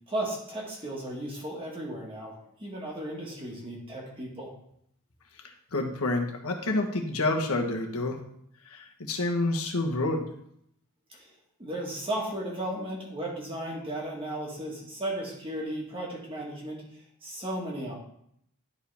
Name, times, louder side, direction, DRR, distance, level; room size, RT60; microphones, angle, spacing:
voice 1, 0.1-4.5 11.1-11.3 11.6-18.0, right 1 dB, 25° right, -2 dB, 1.7 m, -35 dB
voice 2, 5.7-8.2 8.7-10.3, left 2 dB, 75° left, 2 dB, 1.2 m, -28 dB
11.0 x 5.0 x 3.4 m, 0.71 s
head